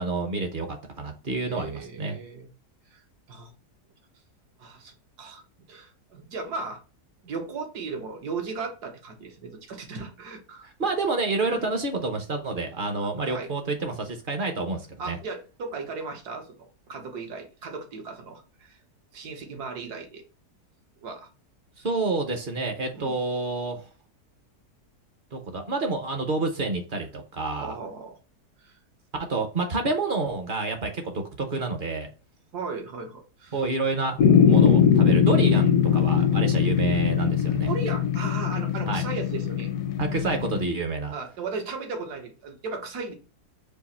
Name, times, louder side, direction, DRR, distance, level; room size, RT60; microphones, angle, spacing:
voice 1, 0.0-2.2 10.6-15.2 21.8-23.9 25.3-27.7 29.2-32.1 33.5-37.7 38.9-39.0 40.0-41.1, right 3 dB, 50° right, 5 dB, 0.6 m, -29 dB
voice 2, 1.4-2.5 2.9-3.0 3.3-3.5 4.6-6.8 7.2-10.7 11.5-11.6 12.9-13.5 15.0-18.8 19.1-20.2 21.0-21.3 22.9-23.2 27.6-28.2 28.6-28.8 32.5-33.6 37.6-39.7 41.1-43.1, right 4 dB, 80° right, 3 dB, 1.6 m, -36 dB
sound 1, 34.2-40.7, left 7 dB, 80° left, 1.1 m, -21 dB
4.7 x 2.5 x 4.1 m, 0.33 s
omnidirectional pair, 1.7 m